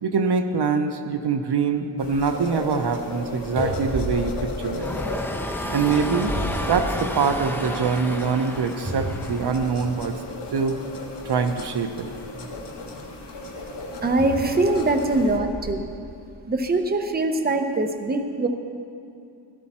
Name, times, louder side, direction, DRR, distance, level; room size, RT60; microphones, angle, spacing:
voice 1, 0.0-4.9 5.7-6.4 6.7-10.2 10.5-10.8 11.2-12.1, right 5 dB, 65° right, 7 dB, 0.8 m, -24 dB
sound 1, 2.0-15.4, left 2 dB, 70° left, 1.7 m, -35 dB
sound 2, 3.6-5.3 5.9-7.4 7.8-7.9 8.8-10.0 10.9-11.0 14.2-15.8 16.5-16.7, right 1 dB, 45° right, 3.9 m, -33 dB
sound 3, 4.7-9.9, left 1 dB, 5° left, 0.8 m, -32 dB
voice 2, 14.0-15.9 16.5-18.5, right 2 dB, 20° right, 5 dB, 0.8 m, -23 dB
16.5 x 12.5 x 4.3 m, 2.5 s
wide cardioid pair, 120°, 42 cm